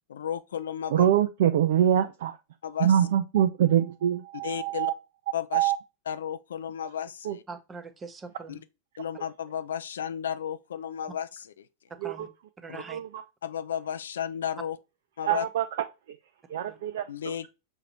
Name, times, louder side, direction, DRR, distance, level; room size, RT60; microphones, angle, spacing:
voice 1, 0.1-1.1 2.6-3.0 4.4-4.9 5.3-5.7 6.1-7.4 8.5-8.6 9.0-11.7 12.7-12.8 13.4-14.8 15.2-15.5 17.1-17.5, left 9 dB, 65° left, 0.4 m, -33 dB
voice 2, 0.9-2.4 2.8-4.9 5.5-5.8 7.2-7.4 12.0-12.3 12.9-13.1 15.2-15.6 16.5-17.5, right 10 dB, 55° right, 0.3 m, -24 dB
voice 3, 7.5-8.6 11.9-12.3 12.6-13.0 15.3-15.4 16.7-16.8, right 5 dB, 15° right, 0.6 m, -42 dB
5.7 x 2.6 x 2.9 m
figure-of-eight pair, 90°, 0 cm